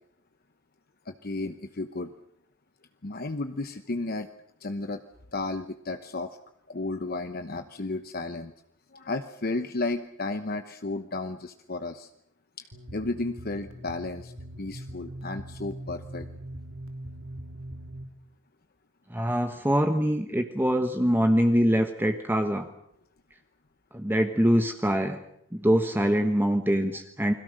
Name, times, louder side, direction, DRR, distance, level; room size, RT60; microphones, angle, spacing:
voice 1, 1.1-2.1 3.0-4.3 4.6-5.0 5.3-6.3 6.7-8.5 8.9-12.1 12.6-12.7 12.9-14.3 14.6-16.3, left 2 dB, 50° left, 8 dB, 1.0 m, -33 dB
sound 1, 12.7-18.0, right 1 dB, 90° right, 3.2 m, -41 dB
voice 2, 19.1-22.7 23.9-25.2 25.5-27.3, equal, 10° right, 5 dB, 1.2 m, -24 dB
29.5 x 22.0 x 6.5 m, 0.73 s
head